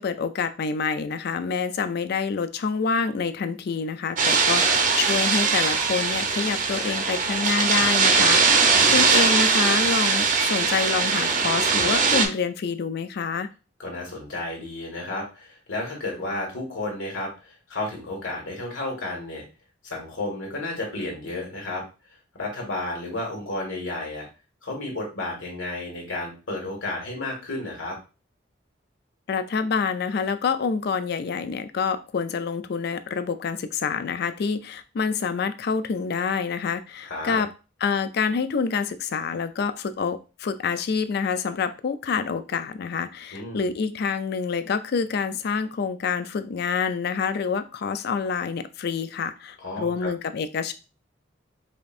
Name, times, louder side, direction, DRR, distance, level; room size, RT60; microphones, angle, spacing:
voice 1, 0.0-13.5 29.3-37.5 37.8-50.7, left 5 dB, 55° left, 11 dB, 0.4 m, -27 dB
sound 1, 4.2-12.3, right 5 dB, 40° right, 0.6 m, -21 dB
voice 2, 4.5-4.8 8.7-9.1 13.8-19.4 19.8-21.8 22.3-24.3 24.6-28.0 37.0-37.4 43.3-43.7 49.6-50.1, left 2 dB, 90° left, 0 dB, 1.7 m, -32 dB
4.9 x 2.6 x 2.5 m, 0.31 s
head